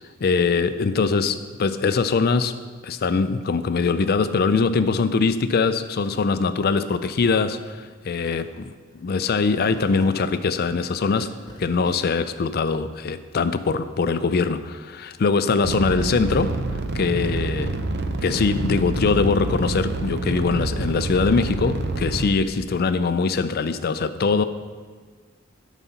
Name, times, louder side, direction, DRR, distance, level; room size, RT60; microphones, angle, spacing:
voice 1, 0.2-2.6 2.8-11.3 11.6-16.5 16.9-17.8 18.2-24.4, left 4 dB, 50° left, 12 dB, 0.4 m, -22 dB
sound 1, 8.9-14.0, equal, 20° left, 0.9 m, -44 dB
sound 2, 15.6-22.4, right 2 dB, 55° right, 0.6 m, -27 dB
11.0 x 4.1 x 5.6 m, 1.5 s
head